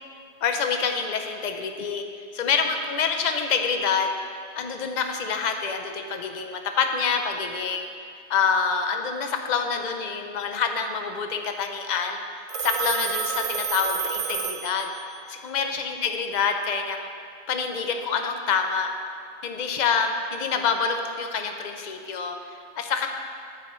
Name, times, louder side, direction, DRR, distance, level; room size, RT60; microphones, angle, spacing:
voice 1, 0.4-2.0 2.3-4.1 4.6-7.9 8.3-12.2 12.6-14.9 15.3-17.1 17.5-18.9 19.4-23.1, left 6 dB, 50° left, 5 dB, 0.6 m, -26 dB
Telephone, 12.5-15.2, right 6 dB, 55° right, 0.3 m, -29 dB
9.1 x 7.8 x 3.1 m, 2.3 s
omnidirectional pair, 1.2 m